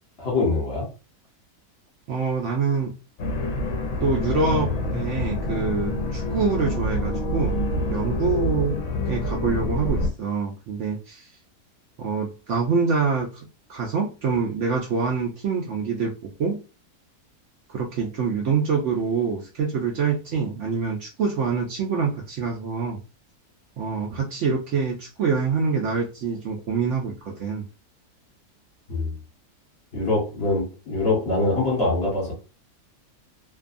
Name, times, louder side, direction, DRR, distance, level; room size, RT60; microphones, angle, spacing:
voice 1, 0.2-0.9 28.9-29.1 29.9-32.3, left 2 dB, 45° left, 1.1 m, -23 dB
voice 2, 2.1-2.9 4.0-7.6 7.9-8.8 9.1-11.3 12.0-13.3 13.7-16.6 17.7-23.0 23.8-27.6, right 5 dB, 65° right, 0.7 m, -25 dB
sound 1, 3.2-10.1, left 2 dB, 65° left, 0.9 m, -26 dB
2.6 x 2.2 x 2.4 m
omnidirectional pair, 1.6 m